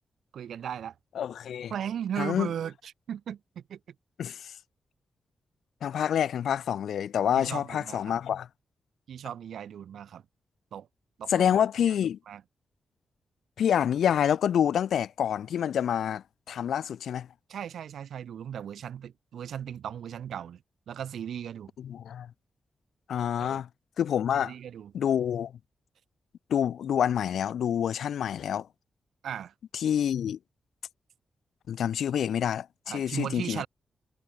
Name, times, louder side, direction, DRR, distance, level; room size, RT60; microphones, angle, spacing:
voice 1, 0.3-0.9 1.7-3.8 7.3-8.2 9.1-10.2 10.7-10.9 11.2-12.0 12.3-12.4 17.5-21.7 23.4-23.6 24.3-24.9 29.2-29.5 32.9-33.7, right 9 dB, 85° right, 5.1 m, -37 dB
voice 2, 1.1-1.7 2.2-2.5 4.2-4.5 5.8-8.5 11.3-12.2 13.6-17.3 21.8-22.3 23.1-23.7 24.0-24.5 24.9-25.5 26.5-28.7 29.7-30.4 31.7-33.6, left 9 dB, 85° left, 0.9 m, -27 dB
wide cardioid pair, 165°, 0 cm